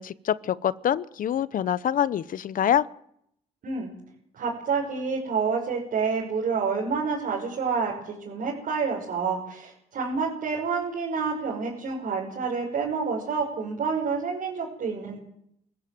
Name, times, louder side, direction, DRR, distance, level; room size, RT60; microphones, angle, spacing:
voice 1, 0.0-2.9, left 10 dB, 65° left, 18 dB, 0.9 m, -25 dB
voice 2, 4.3-15.2, right 5 dB, 70° right, -3 dB, 5.8 m, -28 dB
24.5 x 15.0 x 7.7 m, 0.73 s
supercardioid pair, 65°, 15 cm